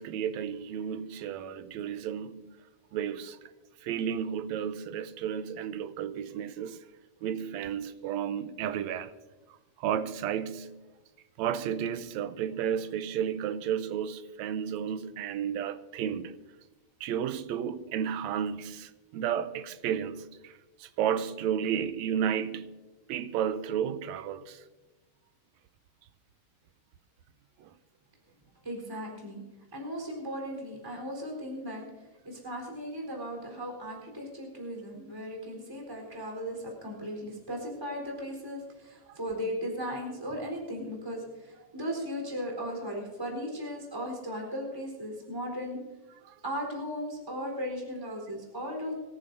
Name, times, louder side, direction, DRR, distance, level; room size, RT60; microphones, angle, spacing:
voice 1, 0.0-2.6 2.9-3.4 3.8-6.8 7.2-9.1 9.8-10.9 11.4-16.4 17.0-24.6 27.6-27.7 39.1-39.2 46.2-46.4, right 8 dB, 80° right, 1.8 m, -32 dB
voice 2, 28.6-29.4 29.7-31.9 32.2-45.8 46.4-48.9, equal, 10° right, 3.9 m, -37 dB
24.5 x 14.0 x 2.7 m
omnidirectional pair, 3.4 m